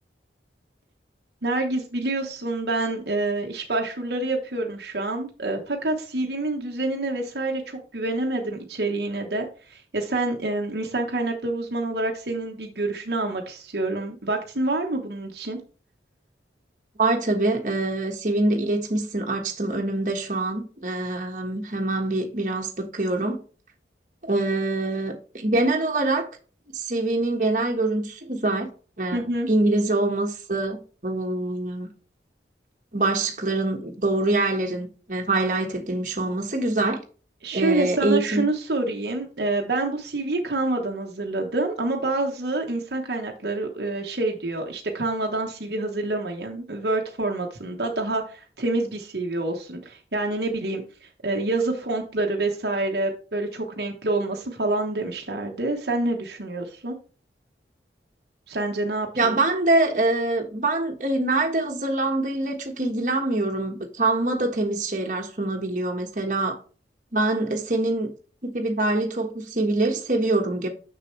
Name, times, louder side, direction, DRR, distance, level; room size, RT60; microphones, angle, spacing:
voice 1, 1.4-15.6 29.1-29.5 37.4-57.0 58.5-59.3, right 2 dB, 65° right, 1.2 m, -27 dB
voice 2, 17.0-23.4 24.2-26.3 26.7-28.7 29.0-31.9 32.9-37.0 37.5-38.4 59.2-66.6 67.1-68.1 68.4-70.7, right 2 dB, 45° right, 1.4 m, -24 dB
6.7 x 6.6 x 3.2 m
head